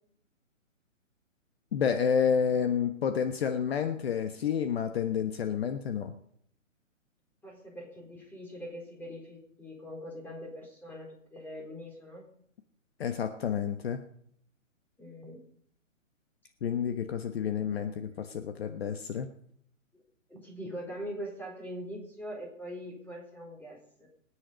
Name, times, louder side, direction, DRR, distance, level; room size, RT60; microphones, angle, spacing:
voice 1, 1.7-6.1 13.0-14.0 16.6-19.3, left 7 dB, 50° left, 7 dB, 1.3 m, -29 dB
voice 2, 7.4-12.3 15.0-15.4 20.3-24.1, equal, 5° left, -1 dB, 4.2 m, -42 dB
21.5 x 10.0 x 5.2 m, 0.67 s
hypercardioid pair, 140°, 39 cm